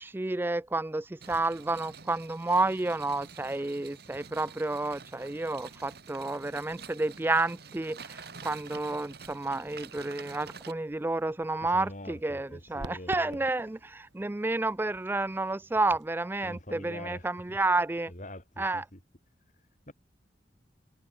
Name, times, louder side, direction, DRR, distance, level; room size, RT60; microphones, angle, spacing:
voice 1, 0.0-18.1 18.6-18.8, right 2 dB, 10° right, 0.3 m, -30 dB
sound 1, 1.2-10.7, right 5 dB, 60° right, 2.6 m, -48 dB
sound 2, 8.5-16.2, right 1 dB, 80° right, 2.7 m, -52 dB
voice 2, 11.6-13.4 16.4-17.6 18.1-19.0 19.5-19.9, left 1 dB, 45° left, 7.5 m, -45 dB
head